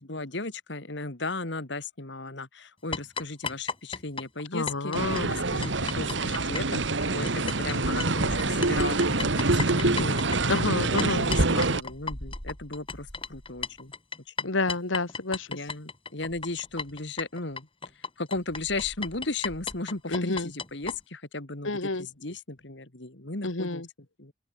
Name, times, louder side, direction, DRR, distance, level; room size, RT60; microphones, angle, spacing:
voice 1, 0.0-6.8 7.1-10.2 10.6-13.9 14.3-14.5 15.5-17.7 18.2-23.8 24.2-24.3, left 3 dB, 60° left, 2.4 m, -36 dB
sound 1, 2.9-7.7 8.0-21.0, left 4 dB, 25° left, 4.2 m, -36 dB
voice 2, 4.5-5.3 10.5-11.3 14.4-15.5 20.1-20.5 21.6-22.1 23.4-23.9, left 3 dB, 80° left, 1.9 m, -29 dB
sound 2, 4.9-11.8, right 2 dB, 65° right, 1.8 m, -26 dB
head